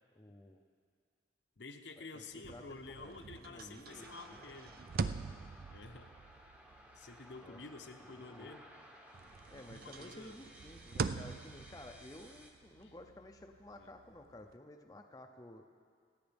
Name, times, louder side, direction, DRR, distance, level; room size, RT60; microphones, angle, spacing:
voice 1, 0.2-0.6 2.0-4.6 7.4-7.6 8.1-8.5 9.5-15.6, left 1 dB, 20° left, 3 dB, 0.6 m, -54 dB
voice 2, 1.6-4.8 5.7-6.2 6.9-8.7 9.7-10.4 12.8-12.9 13.8-13.9, left 3 dB, 70° left, 5 dB, 0.8 m, -50 dB
sound 1, 2.3-8.8 9.1-14.5, right 5 dB, 55° right, 0.4 m, -44 dB
sound 2, 3.9-12.5, equal, 10° right, 0.9 m, -58 dB
26.5 x 9.0 x 3.5 m, 2.1 s
head